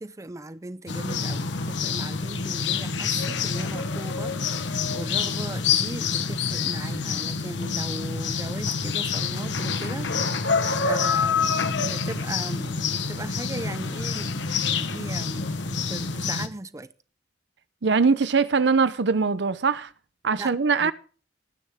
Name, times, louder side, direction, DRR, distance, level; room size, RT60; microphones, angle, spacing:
voice 1, 0.0-10.4 10.8-16.9 20.4-20.5 20.8-20.9, right 2 dB, 15° right, 0.5 m, -38 dB
sound 1, 0.9-16.5, left 5 dB, 80° left, 1.1 m, -27 dB
voice 2, 17.8-19.9 20.2-20.9, right 5 dB, 70° right, 0.7 m, -22 dB
18.5 x 9.8 x 3.6 m
head